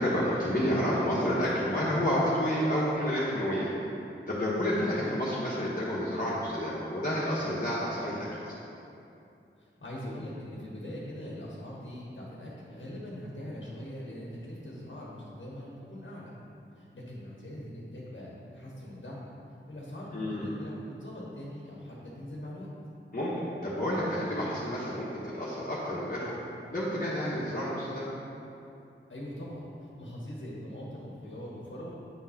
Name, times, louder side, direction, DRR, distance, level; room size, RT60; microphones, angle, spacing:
voice 1, 0.0-3.7 4.3-8.5 20.1-20.5 23.1-23.3 23.6-26.3 26.7-28.1, equal, 45° left, -9 dB, 1.3 m, -29 dB
voice 2, 9.6-16.3 16.7-19.3 19.7-22.7 29.1-29.6 30.0-31.9, equal, 70° left, -5 dB, 1.3 m, -42 dB
9.0 x 3.7 x 5.8 m, 2.7 s
wide cardioid pair, 65°, 21 cm